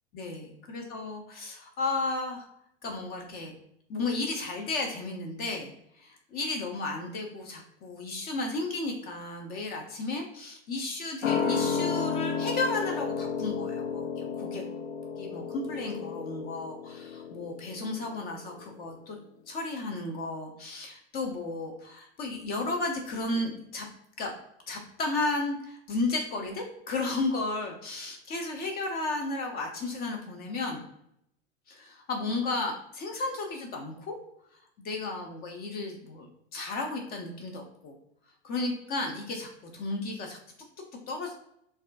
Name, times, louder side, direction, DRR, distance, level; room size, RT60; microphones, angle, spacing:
voice 1, 0.1-2.5 2.8-3.5 3.9-14.6 15.2-19.2 19.5-23.9 24.2-24.3 24.7-30.8 31.7-34.2 34.8-38.0 38.4-40.4 41.1-41.3, left 2 dB, 25° left, 2 dB, 0.5 m, -33 dB
sound 1, 11.2-18.3 18.6-18.7, left 6 dB, 70° left, 0.6 m, -32 dB
4.2 x 2.5 x 2.4 m, 0.74 s
figure-of-eight pair, 85°, 35 cm